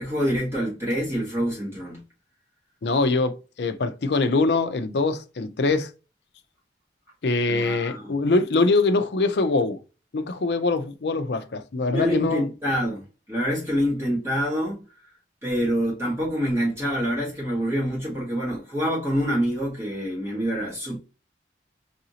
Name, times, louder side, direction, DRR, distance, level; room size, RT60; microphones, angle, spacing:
voice 1, 0.0-2.0 7.5-8.1 11.9-14.8 15.4-21.0, equal, 15° right, 1.5 m, -26 dB
voice 2, 2.8-5.9 7.2-9.8 10.1-12.5, left 3 dB, 70° left, 0.5 m, -23 dB
4.9 x 2.6 x 2.8 m
head